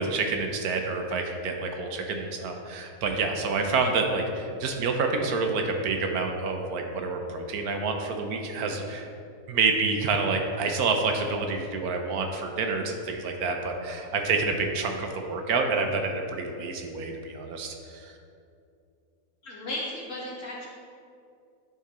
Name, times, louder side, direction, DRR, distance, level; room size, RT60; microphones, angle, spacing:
voice 1, 0.0-9.1 9.5-18.1, right 4 dB, 75° right, 4 dB, 1.2 m, -28 dB
voice 2, 19.4-20.7, left 1 dB, 55° left, -4 dB, 1.8 m, -35 dB
10.5 x 3.7 x 4.2 m, 2.5 s
omnidirectional pair, 1.7 m